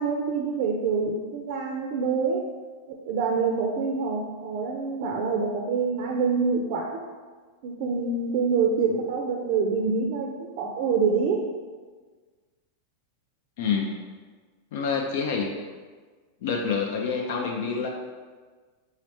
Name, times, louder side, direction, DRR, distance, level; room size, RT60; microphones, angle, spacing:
voice 1, 0.0-2.4 2.9-7.0 7.6-11.5, right 5 dB, 45° right, 1 dB, 0.5 m, -26 dB
voice 2, 13.6-14.0 14.7-15.5 16.4-17.9, left 5 dB, 55° left, 1 dB, 0.4 m, -27 dB
4.0 x 3.9 x 3.0 m, 1.4 s
figure-of-eight pair, 90°, 0 cm